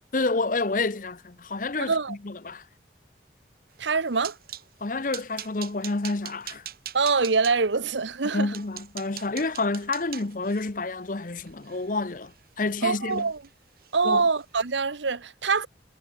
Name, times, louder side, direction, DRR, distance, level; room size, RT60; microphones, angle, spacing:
voice 1, 0.1-2.6 4.8-6.7 8.3-13.3 14.0-14.2, left 3 dB, 45° left, 0.8 m, -29 dB
sound 1, 3.8-4.7 5.1-7.5 8.1-8.2 8.5-12.7 13.1-13.5 13.8-14.0 14.4-14.5, right 11 dB, 50° right, 3.2 m, -42 dB
voice 2, 3.8-4.4 6.9-8.5 12.8-13.4 13.9-15.7, right 4 dB, 75° right, 1.0 m, -24 dB
head